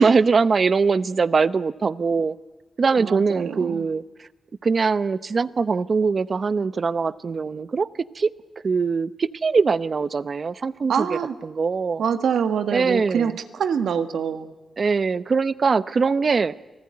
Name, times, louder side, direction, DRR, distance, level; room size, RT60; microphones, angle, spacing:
voice 1, 0.0-2.4 2.8-4.3 4.6-7.9 8.1-8.3 8.6-11.1 11.4-12.0 12.7-13.4 14.8-16.5, right 4 dB, 45° right, 16 dB, 0.9 m, -22 dB
voice 2, 3.0-3.9 10.9-11.4 12.0-14.5, right 7 dB, 85° right, 9 dB, 1.8 m, -25 dB
29.5 x 20.0 x 9.7 m, 1.1 s
cardioid pair, 100°, 0 cm